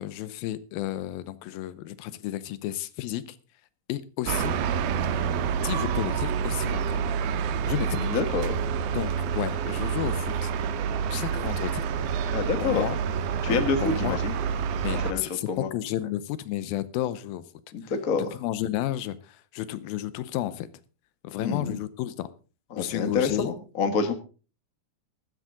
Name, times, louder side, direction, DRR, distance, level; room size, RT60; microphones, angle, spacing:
voice 1, 0.0-3.4 3.9-4.6 5.6-7.1 7.7-8.0 8.9-10.5 11.1-11.8 12.6-13.0 13.5-14.2 14.8-17.4 17.8-17.9 18.3-20.7 21.2-22.3 22.8-23.5, left 13 dB, 80° left, 15 dB, 2.5 m, -32 dB
sound 1, 4.2-15.1, right 7 dB, 80° right, 2.7 m, -28 dB
voice 2, 7.9-8.6 12.3-12.9 13.4-14.3 15.0-15.7 17.7-18.4 21.4-21.8 22.7-24.1, left 5 dB, 60° left, 7 dB, 0.8 m, -27 dB
13.5 x 13.0 x 3.7 m, 0.35 s
omnidirectional pair, 4.2 m